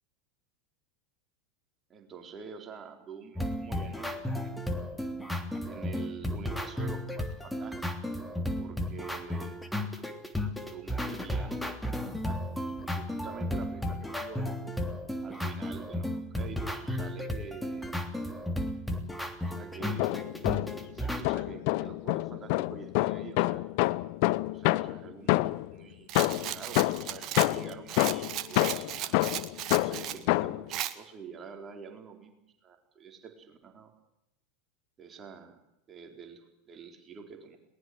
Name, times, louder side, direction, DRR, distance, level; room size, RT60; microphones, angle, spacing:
voice 1, 1.9-4.6 5.6-7.9 8.6-9.6 10.6-11.8 12.1-12.4 12.7-14.5 15.2-17.9 19.5-20.2 20.9-23.6 24.5-29.1 29.7-33.9 35.0-35.6 35.9-37.6, right 6 dB, 30° right, 4 dB, 4.3 m, -47 dB
sound 1, 3.4-21.2, left 1 dB, 5° left, 3.1 m, -34 dB
sound 2, 19.8-20.9 21.2-25.8 26.2-30.7, left 20 dB, 60° left, 0.8 m, -28 dB
Rattle, 26.1-30.2 30.7-30.9, right 12 dB, 45° right, 1.8 m, -36 dB
22.0 x 20.0 x 7.9 m, 0.84 s
hypercardioid pair, 85°, 0 cm